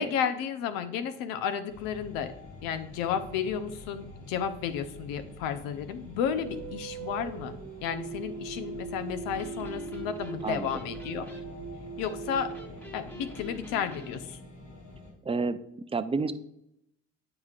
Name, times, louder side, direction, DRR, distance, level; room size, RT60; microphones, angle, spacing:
voice 1, 0.0-2.3 2.6-11.4 12.0-12.5 12.9-14.4, left 8 dB, 75° left, 11 dB, 0.7 m, -32 dB
sound 1, 1.7-15.1, left 2 dB, 90° left, 2.5 m, -47 dB
sound 2, 6.3-13.7, right 6 dB, 55° right, 0.7 m, -41 dB
Electric guitar, 9.2-14.2, left 1 dB, 5° left, 1.3 m, -47 dB
voice 2, 15.3-15.6 15.9-16.3, right 4 dB, 15° right, 12 dB, 0.4 m, -29 dB
9.3 x 4.9 x 2.4 m, 0.81 s
hypercardioid pair, 55°, 34 cm